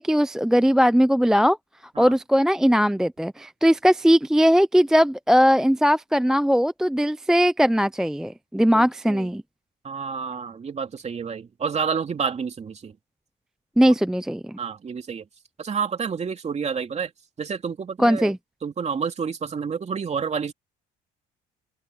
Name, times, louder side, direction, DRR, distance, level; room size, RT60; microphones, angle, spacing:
voice 1, 0.0-1.6 2.0-9.4 13.8-14.6 18.0-18.4, equal, 5° right, 0.4 m, -19 dB
voice 2, 8.7-9.3 9.8-13.0 13.8-13.9 14.6-15.3 15.6-17.1 17.4-18.3 18.6-20.5, right 6 dB, 35° right, 2.8 m, -29 dB
open air
cardioid pair, 115°, 20 cm